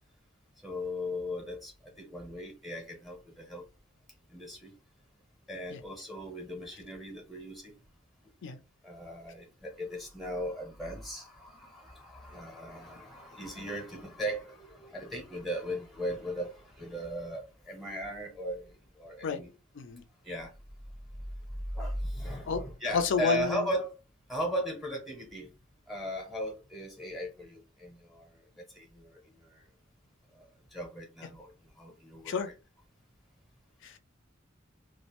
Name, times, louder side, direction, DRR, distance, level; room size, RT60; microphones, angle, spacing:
voice 1, 0.6-3.6 4.3-4.7 5.5-7.7 8.8-19.5 20.2-20.5 21.7-23.9 24.3-25.5 25.9-28.3 28.6-29.6 30.3-32.4, equal, ahead, 0.6 m, -38 dB
voice 2, 22.9-23.7 32.3-32.5 33.8-34.0, left 5 dB, 65° left, 0.4 m, -30 dB
2.3 x 2.0 x 2.9 m
head